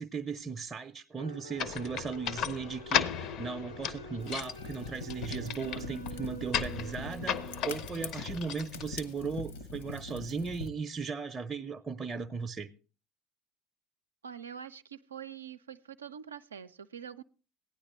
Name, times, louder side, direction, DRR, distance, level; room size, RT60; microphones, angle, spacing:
voice 1, 0.0-12.7, right 5 dB, 25° right, 0.6 m, -37 dB
sound 1, 1.2-7.7, right 2 dB, 90° left, 2.6 m, -46 dB
sound 2, 1.6-9.4, left 8 dB, 50° left, 0.6 m, -36 dB
Fire, 4.2-10.7, left 4 dB, 70° left, 1.0 m, -43 dB
voice 2, 14.2-17.2, right 8 dB, 75° right, 0.5 m, -45 dB
16.5 x 10.0 x 3.0 m
figure-of-eight pair, 65°, 0 cm